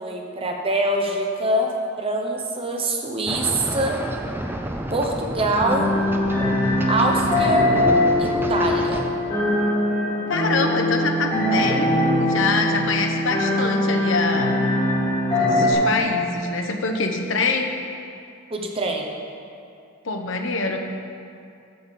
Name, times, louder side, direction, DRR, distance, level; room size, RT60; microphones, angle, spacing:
voice 1, 0.0-4.0 4.9-6.0 6.9-7.7 8.2-9.1 18.5-19.2, right 1 dB, 25° right, 1 dB, 0.9 m, -24 dB
sound 1, 3.3-9.1, right 1 dB, 10° right, 0.4 m, -31 dB
sound 2, 5.6-15.7, left 1 dB, 25° left, 2.5 m, -22 dB
voice 2, 10.3-11.9 12.1-14.6 15.4-17.7 20.0-20.8, left 3 dB, 65° left, 3 dB, 0.8 m, -24 dB
7.9 x 5.4 x 7.4 m, 2.5 s
head